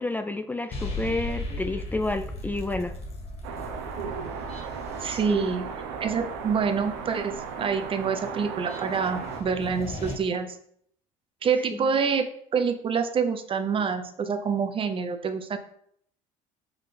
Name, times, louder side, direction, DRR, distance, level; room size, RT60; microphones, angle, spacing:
voice 1, 0.0-2.9 5.3-5.4 11.7-11.9, left 2 dB, 10° left, 8 dB, 0.4 m, -30 dB
sound 1, 0.7-10.1, left 1 dB, 45° left, 2.1 m, -38 dB
sound 2, 3.4-9.4, right 6 dB, 85° right, 0.8 m, -36 dB
voice 2, 5.0-5.7 6.0-10.6 11.4-12.3 12.5-15.6, right 6 dB, 35° right, 9 dB, 0.8 m, -27 dB
5.1 x 4.6 x 4.2 m, 0.68 s
supercardioid pair, 90°, 15 cm